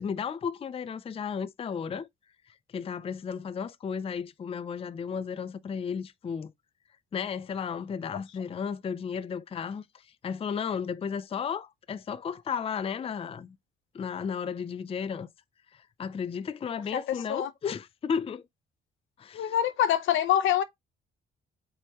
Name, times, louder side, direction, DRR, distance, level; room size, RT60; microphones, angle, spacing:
voice 1, 0.0-2.1 2.7-6.5 7.1-13.6 13.9-15.3 15.7-18.4 19.2-19.5, left 6 dB, 30° left, 0.4 m, -34 dB
voice 2, 16.9-17.5 19.3-20.6, left 10 dB, 80° left, 0.7 m, -25 dB
4.5 x 3.6 x 2.9 m
cardioid pair, 90°, 20 cm